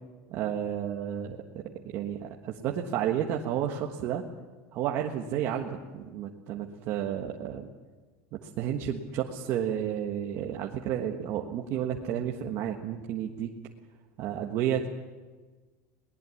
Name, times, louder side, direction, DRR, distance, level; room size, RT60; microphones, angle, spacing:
voice 1, 0.3-4.2 4.7-7.7 8.4-13.5 14.2-14.9, right 10 dB, 40° right, 1 dB, 1.4 m, -31 dB
22.0 x 19.5 x 8.5 m, 1.3 s
cardioid pair, 180°, 8 cm